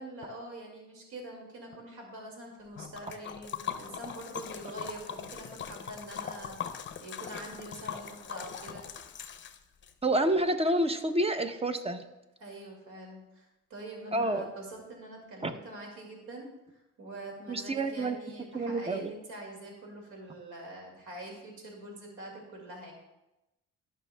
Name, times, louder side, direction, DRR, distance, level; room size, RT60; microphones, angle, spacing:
voice 1, 0.0-8.9 12.4-16.5 17.0-22.9, right 1 dB, 80° right, 0 dB, 2.2 m, -45 dB
Liquid, 2.8-9.9, left 8 dB, 40° left, 0.6 m, -41 dB
voice 2, 10.0-12.0 14.1-14.5 15.4-15.5 17.5-18.2 18.5-19.1, right 1 dB, 20° right, 9 dB, 0.6 m, -28 dB
13.5 x 5.6 x 2.2 m, 0.97 s
cardioid pair, 90°, 30 cm